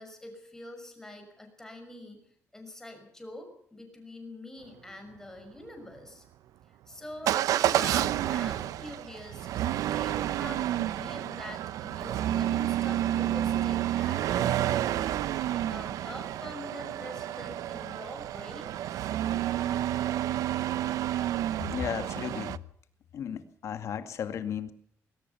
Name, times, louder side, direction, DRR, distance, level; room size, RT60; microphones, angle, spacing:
voice 1, 0.0-2.2 2.5-6.2 6.9-9.5 9.8-18.7, left 1 dB, 10° left, 5 dB, 6.1 m, -45 dB
Motor vehicle (road) / Engine starting / Accelerating revving vroom, 7.3-22.6, right 12 dB, 85° right, 0.7 m, -30 dB
voice 2, 21.6-22.6 23.1-24.7, left 8 dB, 60° left, 10 dB, 2.1 m, -34 dB
20.5 x 18.5 x 7.1 m, 0.64 s
cardioid pair, 145°, 6 cm